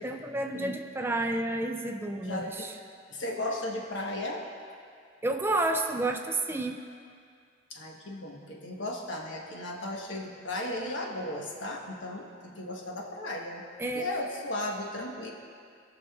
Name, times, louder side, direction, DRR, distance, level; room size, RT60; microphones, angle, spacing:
voice 1, 0.0-2.7 5.2-6.8 13.8-14.1, right 2 dB, 10° right, 5 dB, 0.3 m, -30 dB
voice 2, 2.2-2.7 3.1-4.4 7.7-13.6 13.9-15.3, left 1 dB, 80° left, -1 dB, 1.2 m, -35 dB
18.0 x 6.4 x 2.4 m, 2.2 s
head